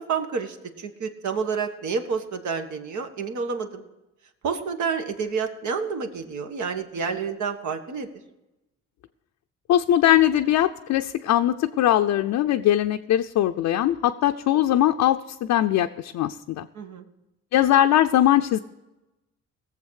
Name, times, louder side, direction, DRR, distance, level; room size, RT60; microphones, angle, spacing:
voice 1, 0.0-3.8 4.4-8.1 16.7-17.0, right 5 dB, 70° right, 6 dB, 1.5 m, -29 dB
voice 2, 9.7-16.7 17.5-18.6, left 12 dB, 70° left, 5 dB, 0.6 m, -21 dB
18.0 x 7.4 x 6.4 m, 0.98 s
cardioid pair, 90°, 30 cm